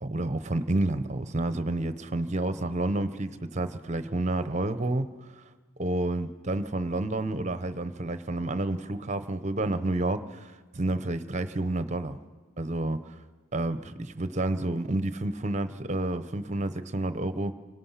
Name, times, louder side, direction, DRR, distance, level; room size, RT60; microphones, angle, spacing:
voice 1, 0.0-5.3 5.8-12.2 12.6-13.0 13.5-17.5, right 2 dB, 30° right, 12 dB, 0.8 m, -30 dB
28.5 x 19.5 x 5.8 m, 1.4 s
head